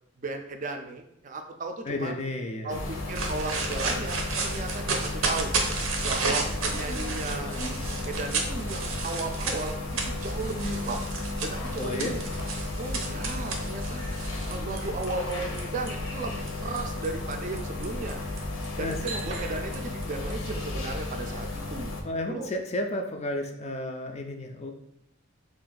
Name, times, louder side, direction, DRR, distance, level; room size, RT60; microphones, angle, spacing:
voice 1, 0.2-2.2 2.6-5.5 6.0-7.6 8.1-11.0 11.4-12.2 12.8-14.0 14.5-18.2 18.8-22.0 22.3-22.5, right 3 dB, 40° right, 5 dB, 0.4 m, -35 dB
voice 2, 1.9-2.8 11.8-12.1 18.8-19.0 22.0-24.7, left 1 dB, 35° left, 4 dB, 0.4 m, -32 dB
sound 1, 2.7-22.0, left 2 dB, 80° left, 0.6 m, -34 dB
sound 2, 3.2-15.9 16.5-20.3, right 4 dB, 90° right, 0.7 m, -33 dB
3.4 x 2.5 x 3.8 m, 0.79 s
head